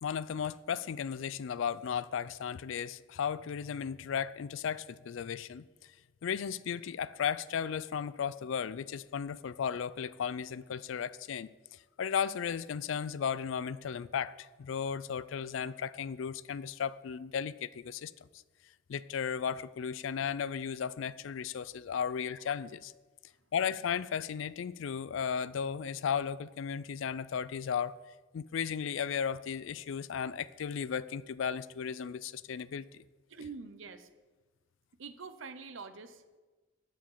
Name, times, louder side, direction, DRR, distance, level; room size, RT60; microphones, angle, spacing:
voice 1, 0.0-5.7 6.2-11.5 12.0-18.1 18.9-22.9 23.5-27.9 28.3-33.0, left 7 dB, 65° left, 17 dB, 0.3 m, -35 dB
voice 2, 33.3-34.1 34.9-36.4, right 4 dB, 65° right, 11 dB, 0.7 m, -46 dB
11.0 x 5.2 x 7.1 m, 1.3 s
head